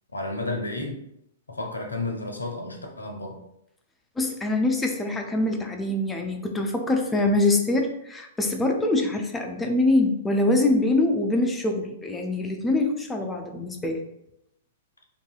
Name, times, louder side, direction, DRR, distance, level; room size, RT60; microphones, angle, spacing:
voice 1, 0.1-1.0 1.5-3.4, left 2 dB, 75° left, 2 dB, 0.5 m, -32 dB
voice 2, 4.2-14.0, left 2 dB, 10° left, 3 dB, 0.4 m, -24 dB
2.6 x 2.6 x 2.3 m, 0.79 s
figure-of-eight pair, 105°, 0 cm